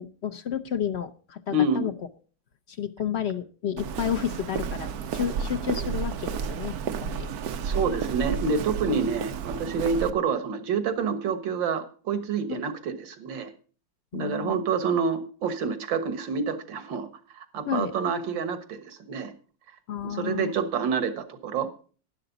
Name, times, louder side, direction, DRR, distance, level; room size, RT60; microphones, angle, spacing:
voice 1, 0.0-1.9 2.8-6.7 7.0-7.3 12.5-12.6 14.1-14.6 17.7-17.9 19.9-20.5, left 9 dB, 70° left, 9 dB, 0.6 m, -31 dB
voice 2, 1.5-1.9 7.6-13.5 14.1-17.1 17.3-19.3 20.0-21.7, right 4 dB, 85° right, 9 dB, 2.0 m, -28 dB
Walk footsteps, 3.8-10.1, right 7 dB, 65° right, 1.1 m, -32 dB
12.0 x 11.0 x 3.9 m, 0.39 s
omnidirectional pair, 2.0 m